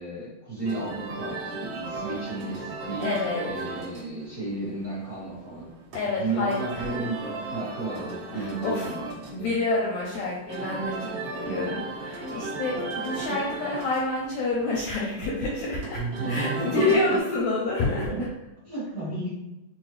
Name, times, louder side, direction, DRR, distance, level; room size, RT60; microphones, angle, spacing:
voice 1, 0.0-3.1 3.4-5.8 6.0-9.0 9.3-9.5 15.9-17.2 17.8-18.3 18.6-19.3, right 2 dB, 40° right, -12 dB, 1.2 m, -33 dB
sound 1, 0.6-17.2, right 2 dB, 60° right, 1.7 m, -36 dB
voice 2, 3.0-3.5 5.9-6.9 8.3-8.9 9.3-16.0 16.3-18.1, left 2 dB, 75° left, -4 dB, 1.7 m, -28 dB
5.1 x 2.1 x 3.2 m, 0.96 s
omnidirectional pair, 3.8 m